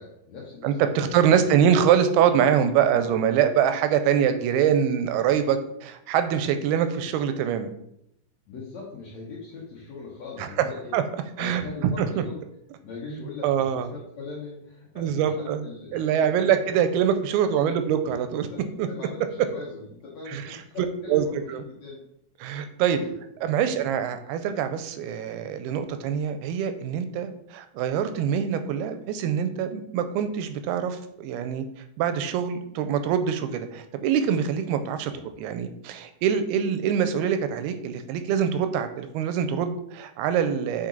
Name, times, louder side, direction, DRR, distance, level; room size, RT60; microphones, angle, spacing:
voice 1, 0.0-1.5 2.9-3.1 8.5-10.9 11.4-12.4 12.8-16.7 17.4-18.0 18.4-22.0 22.9-23.1 23.6-23.8 35.1-35.2, left 4 dB, 65° left, -5 dB, 1.8 m, -41 dB
voice 2, 0.6-7.7 10.4-10.5 10.9-11.0 11.4-12.1 13.4-13.9 15.0-15.6 15.9-18.5 18.8-18.9 20.3-20.4 21.1-21.2 21.5-21.6 22.4-23.0 23.4-31.6 32.0-35.1 35.4-40.9, right 8 dB, 85° right, 9 dB, 2.5 m, -24 dB
7.4 x 4.5 x 3.9 m, 0.76 s
omnidirectional pair, 4.5 m